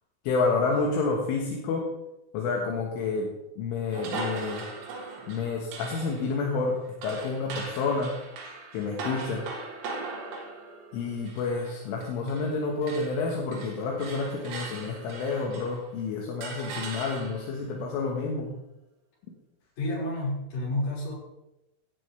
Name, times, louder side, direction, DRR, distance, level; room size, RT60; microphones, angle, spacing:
voice 1, 0.3-1.9 2.3-4.6 5.3-6.7 7.0-8.1 8.7-9.4 10.9-18.5, left 4 dB, 80° left, -1 dB, 4.0 m, -29 dB
sound 1, 3.9-12.6 12.8-15.9 16.4-17.6, right 3 dB, 70° right, 4.2 m, -39 dB
voice 2, 19.8-21.1, left 1 dB, 45° left, -6 dB, 6.8 m, -30 dB
16.5 x 12.0 x 3.4 m, 0.91 s
omnidirectional pair, 5.7 m